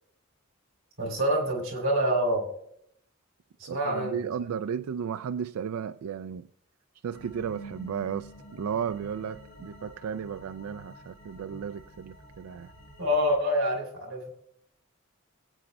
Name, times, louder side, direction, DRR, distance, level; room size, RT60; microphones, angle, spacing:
voice 1, 1.0-2.5 3.7-4.2 13.0-14.3, equal, 60° right, 0 dB, 3.1 m, -26 dB
voice 2, 3.6-6.5 7.0-12.7, right 7 dB, 80° right, 10 dB, 0.3 m, -34 dB
sound 1, 7.1-13.4, right 1 dB, 55° left, 5.1 m, -49 dB
23.0 x 8.6 x 2.2 m, 0.73 s
head